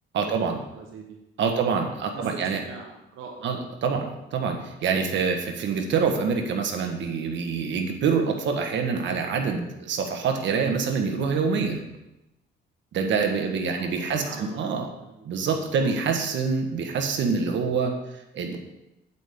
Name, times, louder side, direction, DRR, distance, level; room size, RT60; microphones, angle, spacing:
voice 1, 0.1-0.6 1.4-2.6 3.4-11.8 12.9-14.9 15.2-18.6, right 5 dB, 70° right, 4 dB, 1.3 m, -26 dB
voice 2, 0.7-1.2 2.1-3.6 4.5-4.7 7.7-7.9 13.1-13.4 13.7-15.3 15.6-15.9, right 4 dB, 85° right, 1 dB, 1.2 m, -43 dB
8.4 x 8.3 x 3.6 m, 0.92 s
cardioid pair, 90°, 20 cm